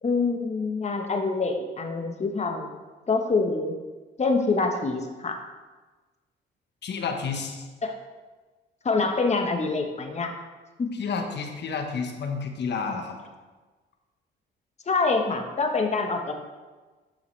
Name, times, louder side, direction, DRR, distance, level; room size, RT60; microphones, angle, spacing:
voice 1, 0.0-2.7 3.1-3.7 4.2-5.4 7.8-8.0 8.8-10.3 10.8-10.9 14.9-16.3, left 3 dB, 35° left, 4 dB, 1.2 m, -25 dB
voice 2, 6.8-7.7 10.9-13.2, left 5 dB, 60° left, 4 dB, 1.2 m, -30 dB
11.5 x 5.6 x 3.3 m, 1.3 s
cardioid pair, 90°, 20 cm